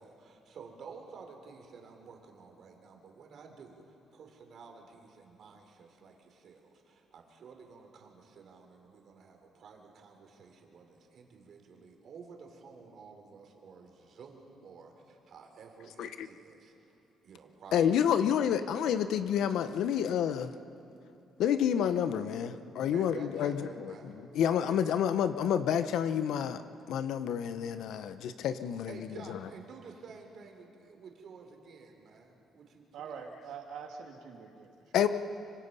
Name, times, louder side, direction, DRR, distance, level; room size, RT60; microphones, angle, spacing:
voice 1, 0.0-16.9 17.2-18.9 22.9-24.1 24.6-24.9 28.9-33.2, right 5 dB, 60° right, 2 dB, 3.6 m, -51 dB
voice 2, 17.7-20.5 21.4-23.6 24.0-26.6 26.9-28.9 34.9-35.1, left 9 dB, 80° left, 11 dB, 0.9 m, -29 dB
voice 3, 32.9-35.1, right 6 dB, 80° right, 2 dB, 2.5 m, -45 dB
25.0 x 24.5 x 5.6 m, 2.8 s
cardioid pair, 110°, 0 cm